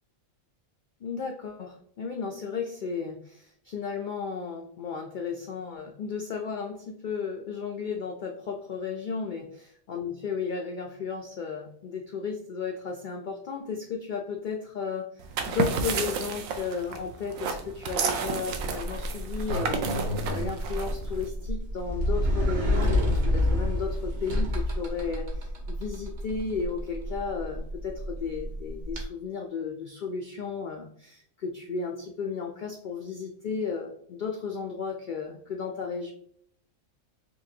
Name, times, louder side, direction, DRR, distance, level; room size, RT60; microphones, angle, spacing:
voice 1, 1.0-9.4 9.9-36.1, left 5 dB, 80° left, 2 dB, 0.4 m, -34 dB
sound 1, 15.2-21.3, right 5 dB, 80° right, 1.0 m, -32 dB
Sliding door, 18.5-29.0, left 1 dB, 40° right, 0.8 m, -29 dB
4.4 x 2.8 x 2.6 m, 0.62 s
omnidirectional pair, 1.4 m